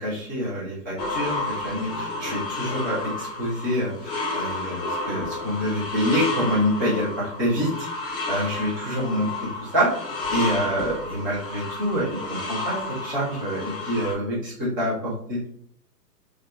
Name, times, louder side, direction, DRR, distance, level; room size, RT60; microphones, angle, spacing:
voice 1, 0.0-9.3 9.7-15.4, equal, 15° right, -8 dB, 0.5 m, -26 dB
sound 1, 1.0-14.1, left 3 dB, 35° left, 0.7 m, -31 dB
2.8 x 2.3 x 2.3 m, 0.65 s
figure-of-eight pair, 120°, 49 cm